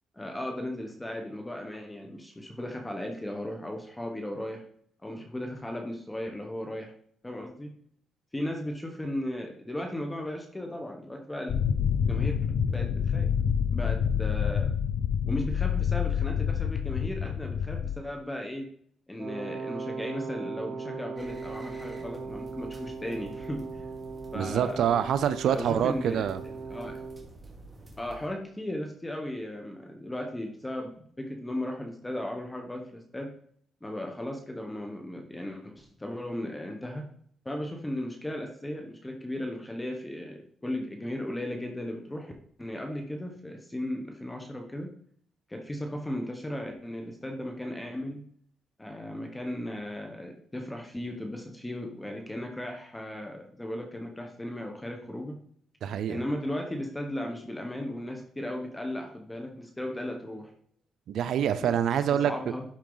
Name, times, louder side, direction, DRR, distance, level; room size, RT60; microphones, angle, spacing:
voice 1, 0.1-4.6 5.0-6.9 7.2-7.7 8.3-11.6 12.0-13.3 13.7-14.7 15.3-18.7 19.1-23.9 24.3-24.9 25.5-27.0 28.0-33.3 33.8-37.1 37.4-42.3 42.6-44.9 45.5-48.3 48.8-55.4 56.1-60.5 61.6-62.6, left 1 dB, 15° left, 3 dB, 1.2 m, -36 dB
sound 1, 11.5-17.9, left 8 dB, 70° left, 0.6 m, -27 dB
Wind instrument woodwind instrument, 19.2-27.2, right 4 dB, 50° right, 2.9 m, -39 dB
sound 2, 21.1-28.3, right 2 dB, 20° right, 2.4 m, -49 dB
voice 2, 24.3-26.4 55.8-56.2 61.1-62.5, right 9 dB, 70° right, 11 dB, 0.5 m, -26 dB
12.0 x 4.6 x 4.0 m, 0.63 s
cardioid pair, 90°, 0 cm